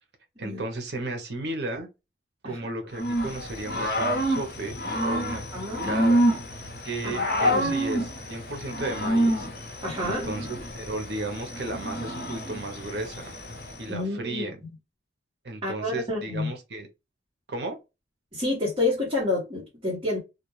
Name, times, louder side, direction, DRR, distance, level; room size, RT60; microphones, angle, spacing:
voice 1, 0.4-1.9 2.4-4.8 5.0-5.5 5.8-6.3 6.8-9.5 10.0-13.4 13.8-14.6 15.4-16.9 17.5-17.8, right 2 dB, 65° right, 0.7 m, -34 dB
Growling / Cricket, 2.9-13.9, equal, 55° left, 0.8 m, -28 dB
voice 2, 5.5-5.9 7.0-7.7 9.8-10.3 13.9-14.4 15.6-16.5 18.3-20.2, left 2 dB, 25° right, 1.0 m, -29 dB
2.3 x 2.3 x 3.0 m
head